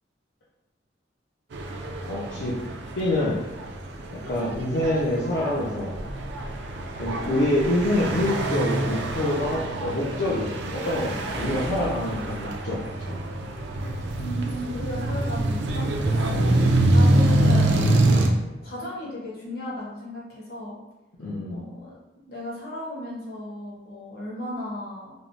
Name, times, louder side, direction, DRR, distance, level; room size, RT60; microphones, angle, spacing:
sound 1, 1.5-18.3, right 1 dB, 75° right, 0.4 m, -25 dB
voice 1, 2.1-2.6 3.0-3.4 4.1-6.0 7.0-13.2 16.3-16.7 21.2-21.7, left 1 dB, 75° left, -7 dB, 0.5 m, -26 dB
voice 2, 14.2-17.9 18.4-20.2 20.5-20.8 21.5-22.0 22.2-25.1, equal, 55° left, -6 dB, 0.9 m, -35 dB
3.5 x 2.0 x 2.5 m, 1.0 s
head